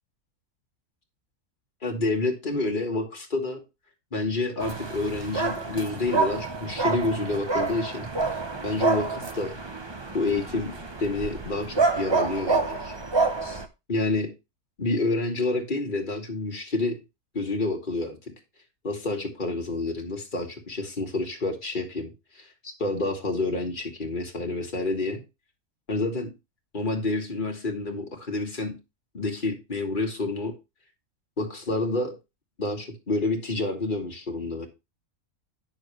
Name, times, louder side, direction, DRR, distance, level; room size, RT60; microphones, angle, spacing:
voice 1, 1.8-3.6 4.1-8.1 8.6-9.6 10.1-10.7 11.0-12.9 13.4-13.6 13.9-14.3 14.8-17.0 17.3-18.2 18.8-25.2 25.9-26.3 26.7-28.7 29.1-30.5 31.4-32.1 32.6-34.7, left 2 dB, 35° left, 3 dB, 1.7 m, -28 dB
sound 1, 4.6-13.7, right 4 dB, 25° right, 0.6 m, -28 dB
9.8 x 6.4 x 3.3 m, 0.25 s
omnidirectional pair, 1.5 m